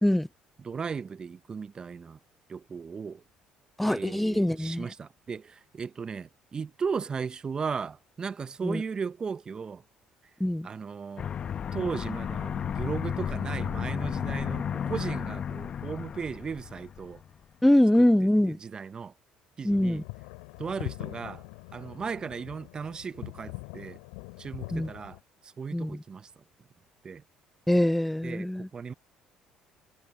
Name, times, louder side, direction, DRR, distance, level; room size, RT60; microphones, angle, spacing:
voice 1, 0.6-2.2 2.5-3.2 3.9-9.8 10.6-11.3 11.7-17.2 18.5-19.1 19.6-20.0 20.6-21.4 21.7-24.0 24.4-25.2 25.4-26.3 27.0-27.2 28.2-28.9, right 5 dB, 35° right, 1.0 m, -36 dB
voice 2, 3.8-4.9 8.6-8.8 10.4-10.7 17.6-18.6 19.6-20.0 24.7-24.9 25.7-26.0 27.7-28.7, left 1 dB, 5° left, 0.4 m, -23 dB
Aircraft, 11.2-17.3, left 8 dB, 45° left, 1.0 m, -33 dB
sound 1, 19.7-25.2, left 33 dB, 80° left, 4.7 m, -42 dB
hypercardioid pair, 60°, 2 cm